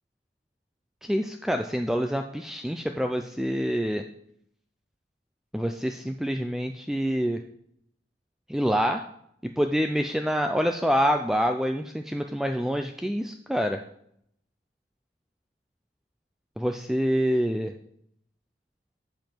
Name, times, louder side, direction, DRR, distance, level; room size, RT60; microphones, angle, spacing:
voice 1, 1.0-4.0 5.5-7.4 8.5-9.0 9.4-13.8 16.6-17.7, equal, ahead, 5 dB, 0.3 m, -26 dB
7.7 x 7.3 x 4.5 m, 0.71 s
head